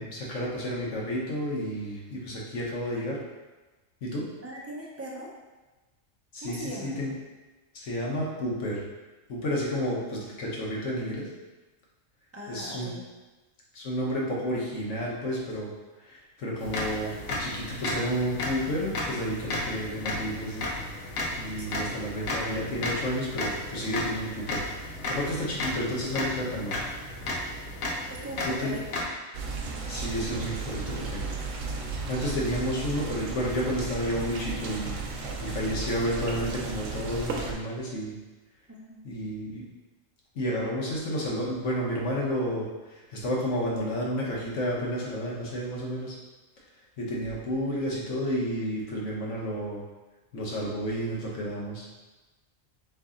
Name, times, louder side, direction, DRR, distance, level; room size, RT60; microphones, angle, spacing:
voice 1, 0.0-3.2 4.0-4.2 6.3-7.2 7.7-8.9 9.3-11.3 12.5-12.9 13.7-15.7 16.0-20.7 21.0-26.8 28.4-28.8 29.9-31.3 32.1-38.2 39.0-39.6 40.3-46.2 47.0-49.8 50.3-51.9, equal, 65° left, -4 dB, 1.2 m, -31 dB
voice 2, 4.4-5.3 6.4-7.0 12.3-13.0 21.6-21.7 28.1-29.0 38.7-39.0, equal, 25° right, -4 dB, 0.3 m, -40 dB
sound 1, 16.6-29.0, left 1 dB, 85° left, 1.2 m, -34 dB
sound 2, 29.3-37.5, right 4 dB, 75° right, 1.0 m, -34 dB
3.9 x 3.2 x 3.6 m, 1.2 s
omnidirectional pair, 1.3 m